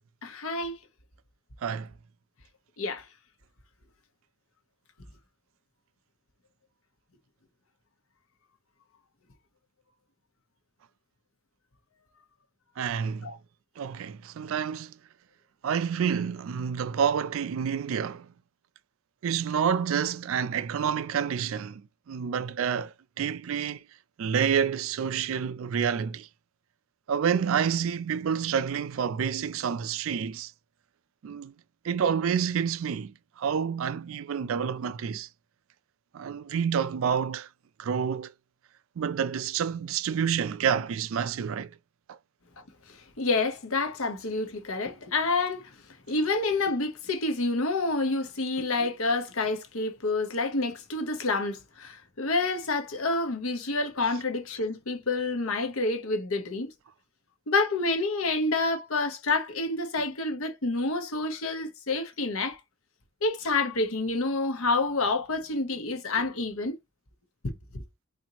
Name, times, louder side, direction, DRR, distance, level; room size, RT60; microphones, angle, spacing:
voice 1, 0.2-0.8 2.8-3.0 13.2-13.4 43.2-45.7 46.1-56.7 57.5-62.6 63.2-66.8 67.4-67.5, left 3 dB, 75° left, 1.0 m, -28 dB
voice 2, 12.8-13.3 13.8-14.9 15.6-18.3 19.2-21.8 22.1-23.8 24.2-26.3 27.1-30.5 31.2-31.5 31.8-35.3 36.1-37.5 37.8-38.3 39.0-41.7 42.1-42.2, right 7 dB, 65° right, 0.3 m, -28 dB
4.3 x 2.6 x 2.8 m
head